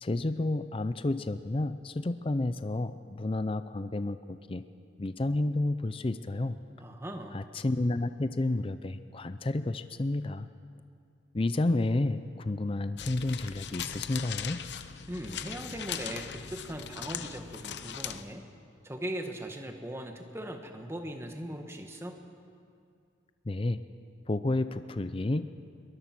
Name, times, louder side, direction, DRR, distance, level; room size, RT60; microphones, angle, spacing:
voice 1, 0.0-4.6 5.0-6.6 7.3-10.5 11.3-14.6 23.5-23.8 24.3-25.4, left 2 dB, 30° left, 11 dB, 0.5 m, -30 dB
voice 2, 6.8-7.4 15.1-18.4 18.8-22.2, right 1 dB, 15° right, 4 dB, 1.4 m, -39 dB
sound 1, 13.0-18.2, left 8 dB, 60° left, 0.8 m, -39 dB
22.5 x 20.0 x 6.1 m, 2.3 s
head